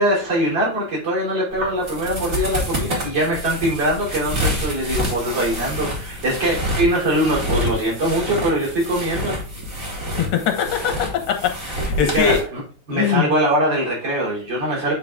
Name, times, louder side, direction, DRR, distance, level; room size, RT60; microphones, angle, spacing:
voice 1, 0.0-9.4 12.0-12.6 12.9-14.9, right 1 dB, 55° right, 4.2 m, -22 dB
sound 1, 1.5-12.4, equal, 40° right, 2.6 m, -27 dB
voice 2, 10.2-10.9 11.3-12.4 12.9-13.3, left 8 dB, 75° left, 2.1 m, -21 dB
8.5 x 3.9 x 3.5 m
omnidirectional pair, 2.4 m